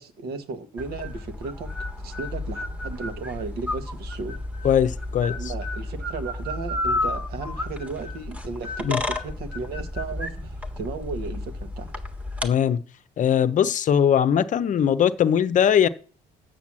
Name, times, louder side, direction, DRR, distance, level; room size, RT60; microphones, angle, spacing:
voice 1, 0.0-1.7 2.0-4.4 4.6-4.8 5.3-11.9, right 4 dB, 65° right, 1.4 m, -35 dB
sound 1, 0.8-12.5, left 2 dB, 10° right, 1.4 m, -32 dB
voice 2, 4.6-5.5 8.8-9.0 12.4-12.8 13.2-15.9, left 9 dB, 50° left, 0.7 m, -20 dB
8.3 x 6.0 x 7.4 m
cardioid pair, 110°, 17 cm